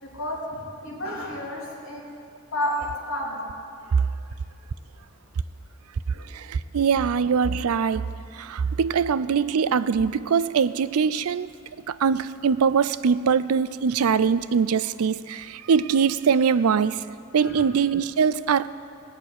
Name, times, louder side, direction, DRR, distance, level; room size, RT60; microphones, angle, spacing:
voice 1, 0.0-2.0 2.5-3.5 3.8-3.9 6.1-6.2 17.4-17.7, left 1 dB, 70° left, -4 dB, 3.4 m, -31 dB
voice 2, 6.3-11.5 11.9-17.0 17.3-18.7, right 6 dB, 80° right, 16 dB, 0.4 m, -22 dB
18.0 x 6.7 x 9.0 m, 2.4 s
head